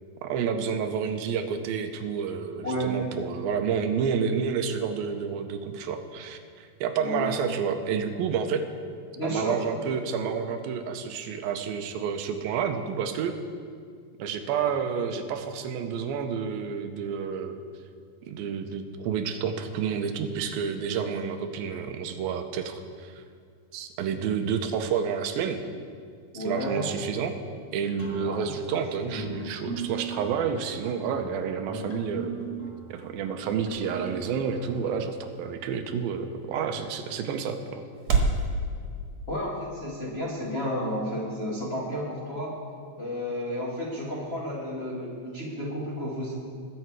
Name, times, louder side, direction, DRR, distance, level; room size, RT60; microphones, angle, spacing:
voice 1, 0.2-8.6 9.2-13.4 14.2-17.6 18.3-23.2 23.7-25.6 26.5-27.4 27.7-32.3 32.9-37.8, right 7 dB, 80° right, 7 dB, 2.6 m, -29 dB
voice 2, 2.6-3.2 3.4-3.7 7.0-7.3 9.1-9.6 26.3-26.9 28.2-28.5 39.3-42.6 43.0-46.3, equal, 35° left, -6 dB, 1.0 m, -32 dB
sound 1, 28.0-35.4, right 3 dB, 5° left, 2.3 m, -39 dB
sound 2, 32.2-38.5, right 4 dB, 55° right, 2.3 m, -33 dB
21.0 x 7.9 x 4.7 m, 2.2 s
omnidirectional pair, 4.4 m